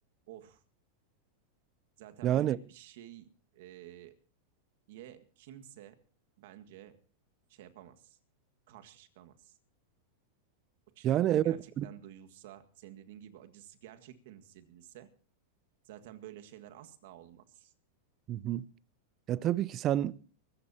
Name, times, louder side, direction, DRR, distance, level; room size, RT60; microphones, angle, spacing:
voice 1, 0.3-0.6 2.0-4.2 4.9-6.0 6.4-7.0 7.5-8.2 8.7-9.5 11.0-15.1 15.9-17.7, right 12 dB, 65° right, 1.8 m, -51 dB
voice 2, 2.2-2.6 11.0-11.9 18.3-18.7 19.3-20.1, right 12 dB, 35° right, 0.6 m, -28 dB
23.5 x 14.5 x 2.9 m
hypercardioid pair, 125°, 0 cm